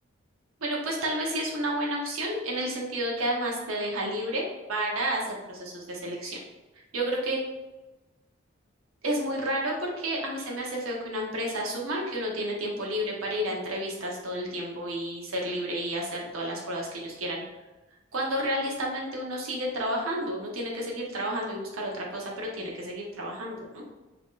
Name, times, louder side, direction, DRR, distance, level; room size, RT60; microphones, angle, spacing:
voice 1, 0.6-4.4 4.7-6.4 6.9-7.4 9.0-17.4 18.1-23.8, right 1 dB, 90° right, -2 dB, 0.8 m, -31 dB
2.8 x 2.4 x 3.6 m, 1.1 s
head